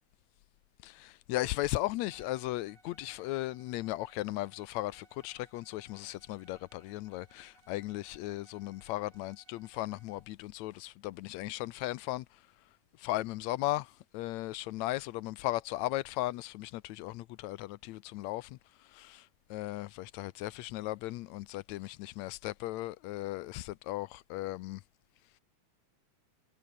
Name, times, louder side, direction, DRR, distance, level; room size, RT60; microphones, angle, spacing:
voice 1, 0.8-12.2 13.0-13.9 14.1-18.5 19.0-19.2 19.5-24.8, left 17 dB, 75° left, 1.8 m, -36 dB
Bowed string instrument, 2.0-10.3, right 4 dB, 50° right, 6.1 m, -65 dB
omnidirectional pair, 3.6 m